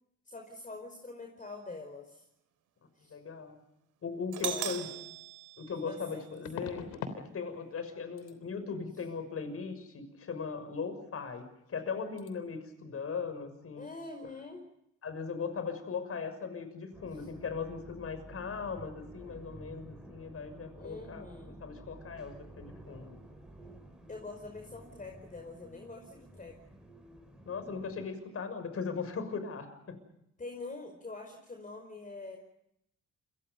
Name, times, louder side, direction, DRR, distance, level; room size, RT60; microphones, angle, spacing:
voice 1, 0.3-2.3 2.9-3.2 4.4-4.7 4.9-5.0 5.8-6.3 13.7-14.7 17.1-17.3 20.8-21.6 24.1-26.6 30.4-32.4, left 3 dB, 25° left, 3 dB, 5.1 m, -45 dB
voice 2, 3.1-3.6 4.0-4.9 5.6-6.9 7.1-13.9 14.2-14.3 15.0-23.2 27.4-30.0, left 5 dB, 50° left, 10 dB, 6.3 m, -38 dB
Doorbell, 4.3-6.3, right 10 dB, 85° right, 3.0 m, -39 dB
sound 1, 4.9-5.0 6.4-7.2 7.5-7.9 8.2-8.4 11.3-11.4 11.7-11.9 12.2-12.3, left 6 dB, 85° left, 3.4 m, -42 dB
sound 2, 16.9-28.1, right 1 dB, 5° right, 5.6 m, -52 dB
29.5 x 24.0 x 5.4 m, 0.80 s
cardioid pair, 90°, 30 cm